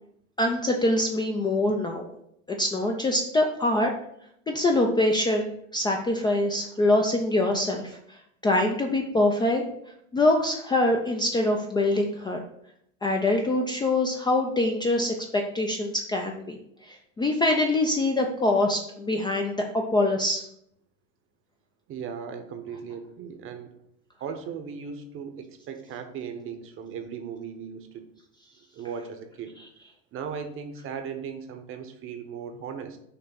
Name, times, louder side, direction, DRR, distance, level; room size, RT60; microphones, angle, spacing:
voice 1, 0.4-2.1 2.5-3.9 4.5-8.0 8.4-9.6 10.1-12.4 13.0-16.6 16.9-20.4, left 1 dB, 10° left, 1 dB, 0.5 m, -24 dB
voice 2, 21.9-23.7 24.2-28.1 28.7-29.5 30.1-33.0, right 6 dB, 35° right, 7 dB, 0.9 m, -37 dB
6.0 x 3.0 x 5.7 m, 0.72 s
hypercardioid pair, 105°, 39 cm